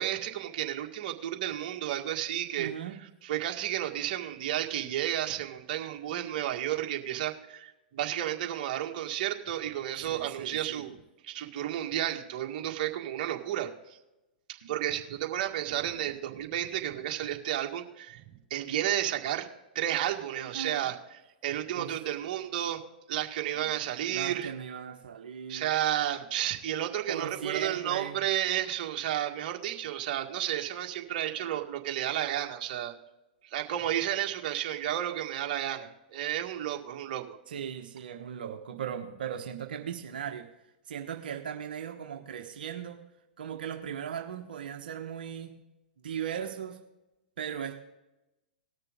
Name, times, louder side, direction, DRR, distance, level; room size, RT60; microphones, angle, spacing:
voice 1, 0.0-2.7 3.2-10.9 11.2-14.0 14.7-18.2 18.5-19.5 19.7-20.9 21.4-22.8 23.1-24.5 25.5-32.9 33.5-37.4, right 11 dB, 50° right, 3 dB, 1.8 m, -32 dB
voice 2, 2.6-3.0 10.1-10.8 14.6-14.7 19.9-20.3 20.5-20.8 21.8-21.9 23.5-23.7 24.1-25.7 27.1-28.2 37.5-40.5 40.9-43.1 43.4-45.6 46.0-46.8 47.4-47.8, right 8 dB, 70° right, 4 dB, 1.2 m, -38 dB
19.5 x 6.7 x 3.6 m, 0.97 s
hypercardioid pair, 110°, 5 cm